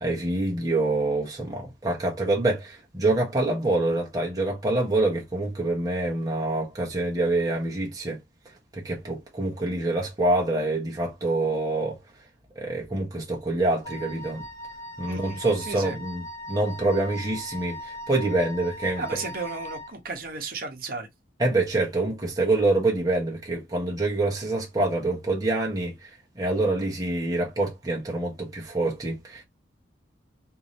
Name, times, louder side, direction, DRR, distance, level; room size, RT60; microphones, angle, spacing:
voice 1, 0.0-8.2 8.7-12.0 12.6-14.4 15.0-19.0 21.4-25.9 26.4-29.4, right 2 dB, 20° right, 1.0 m, -26 dB
Wind instrument woodwind instrument, 13.8-19.9, equal, 15° left, 0.8 m, -39 dB
voice 2, 15.0-15.4 15.7-16.0 19.0-21.1, right 4 dB, 50° right, 1.1 m, -34 dB
3.4 x 2.7 x 4.1 m
head